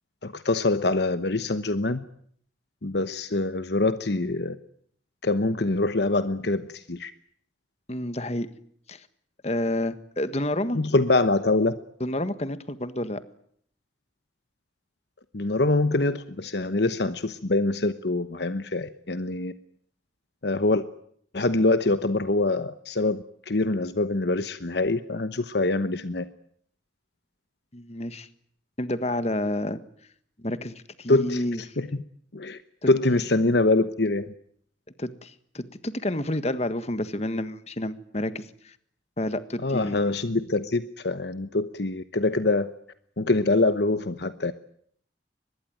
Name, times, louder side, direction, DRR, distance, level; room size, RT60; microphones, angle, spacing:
voice 1, 0.2-2.0 2.8-4.5 5.2-7.1 10.7-11.8 15.3-19.5 20.4-20.8 21.3-26.2 31.1-31.4 31.8-31.9 32.3-32.6 32.9-34.3 39.6-42.7 43.2-44.5, left 2 dB, 60° left, 12 dB, 1.0 m, -24 dB
voice 2, 7.9-8.5 8.9-9.1 9.4-10.8 12.0-13.2 27.7-28.3 28.8-29.8 30.4-31.6 32.8-32.9 35.0-38.7 39.2-40.1, left 1 dB, 35° left, 12 dB, 1.5 m, -29 dB
24.5 x 21.0 x 9.4 m, 0.65 s
head